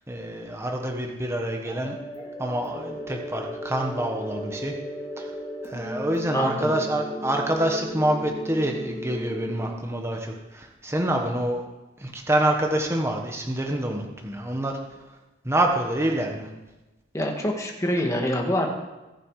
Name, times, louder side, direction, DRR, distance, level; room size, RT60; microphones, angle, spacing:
voice 1, 0.1-2.0 2.4-4.7 5.2-5.3 5.6-11.6 12.0-14.8 15.4-16.5, right 1 dB, 15° right, 1 dB, 1.5 m, -26 dB
sound 1, 1.6-9.6, equal, 30° left, 2.7 m, -35 dB
voice 2, 6.3-6.7 17.1-18.7, equal, 15° left, 1 dB, 1.9 m, -25 dB
22.5 x 7.6 x 4.9 m, 1.1 s
head